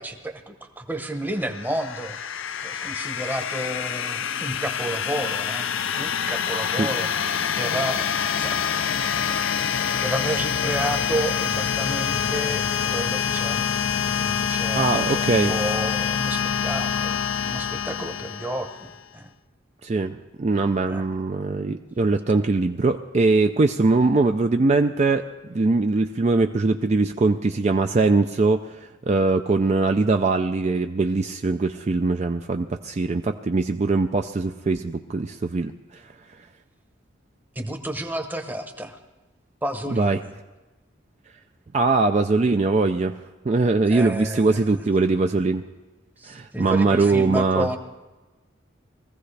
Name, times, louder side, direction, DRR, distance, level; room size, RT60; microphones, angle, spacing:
voice 1, 0.0-2.2 2.6-8.1 8.4-8.6 10.0-17.2 17.5-19.3 20.9-21.1 37.5-39.0 39.6-40.3 43.9-44.8 46.2-47.8, right 1 dB, 10° right, 5 dB, 0.9 m, -31 dB
sound 1, 1.4-19.0, left 7 dB, 70° left, 0.5 m, -26 dB
voice 2, 14.7-15.5 19.8-25.2 25.5-36.0 39.9-40.2 41.7-43.2 43.4-45.6 46.3-47.7, right 3 dB, 35° right, 6 dB, 0.4 m, -21 dB
21.5 x 15.0 x 3.3 m, 1.2 s
head